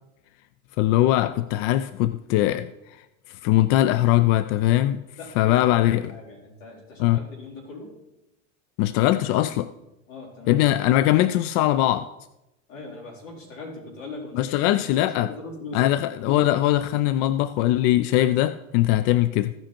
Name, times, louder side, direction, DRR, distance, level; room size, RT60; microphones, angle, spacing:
voice 1, 0.8-2.7 3.3-5.0 5.4-6.1 7.0-7.2 8.8-9.7 10.5-12.1 14.3-15.3 15.7-19.5, left 14 dB, 50° left, 0.4 m, -21 dB
voice 2, 5.2-7.9 10.1-10.6 12.7-14.6 15.1-15.9, left 3 dB, 80° left, 4.3 m, -40 dB
15.5 x 5.2 x 4.3 m
supercardioid pair, 115°, 38 cm